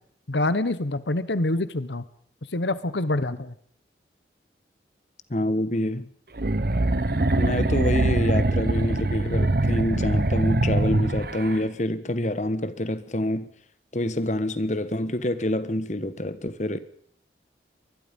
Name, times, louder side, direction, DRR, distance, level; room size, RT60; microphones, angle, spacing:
voice 1, 0.3-2.0 2.5-3.5, left 2 dB, 85° left, 1.2 m, -26 dB
voice 2, 5.3-6.1 7.4-13.5 13.9-16.8, left 1 dB, 40° left, 1.4 m, -27 dB
sound 1, 6.4-11.6, right 2 dB, 55° right, 1.1 m, -23 dB
24.0 x 20.5 x 5.4 m
head